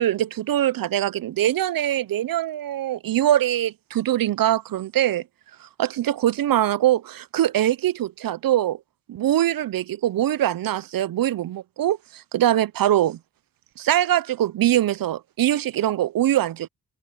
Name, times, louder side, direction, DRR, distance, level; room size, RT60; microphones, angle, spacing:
voice 1, 0.0-5.2 5.8-8.8 9.1-13.2 13.8-16.7, right 12 dB, 80° right, 0.5 m, -22 dB
cardioid pair, 60°, 34 cm